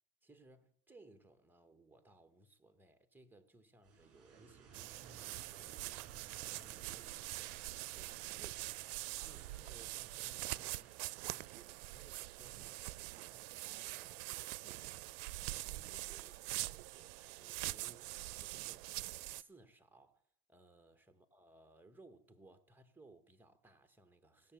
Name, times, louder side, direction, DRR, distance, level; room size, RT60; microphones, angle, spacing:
voice 1, 0.2-10.9 11.2-20.2 20.5-24.5, right 2 dB, 5° right, 0.9 m, -63 dB
sound 1, 3.8-14.5, right 7 dB, 30° right, 3.3 m, -61 dB
sound 2, 4.7-19.4, right 21 dB, 65° right, 0.5 m, -44 dB
16.5 x 6.7 x 8.7 m
supercardioid pair, 125°, 48 cm